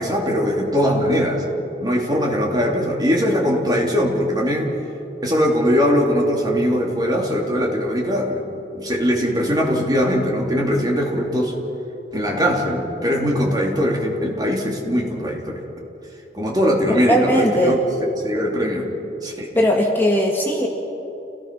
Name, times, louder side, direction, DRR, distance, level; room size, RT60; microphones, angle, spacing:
voice 1, 0.0-1.4 1.8-4.7 5.2-8.4 8.7-11.5 12.1-15.6 16.3-18.9 19.2-19.5, equal, 25° right, -1 dB, 2.9 m, -21 dB
voice 2, 17.1-17.8 19.6-20.7, equal, 10° left, -1 dB, 1.8 m, -18 dB
29.5 x 18.5 x 6.1 m, 2.9 s
head